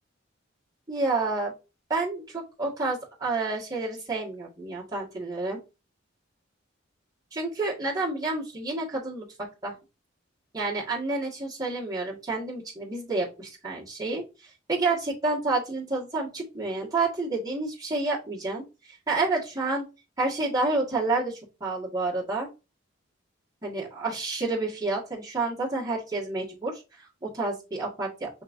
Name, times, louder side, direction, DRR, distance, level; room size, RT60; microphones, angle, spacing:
voice 1, 0.9-1.5 1.9-5.6 7.3-9.8 10.5-19.8 20.2-22.5 23.6-28.3, right 3 dB, 20° right, -7 dB, 1.7 m, -29 dB
5.3 x 3.7 x 2.6 m, 0.28 s
head